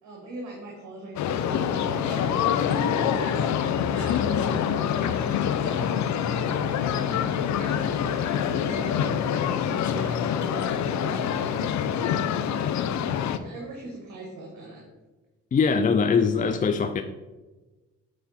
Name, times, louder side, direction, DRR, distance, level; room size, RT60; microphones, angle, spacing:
voice 1, 0.0-12.9 13.2-14.8, right 1 dB, 70° right, -1 dB, 1.7 m, -39 dB
sound 1, 1.2-13.4, left 8 dB, 70° left, 0.6 m, -26 dB
voice 2, 15.5-17.0, left 5 dB, 25° left, 8 dB, 0.4 m, -22 dB
8.2 x 4.6 x 4.2 m, 1.2 s
cardioid pair, 90°, 30 cm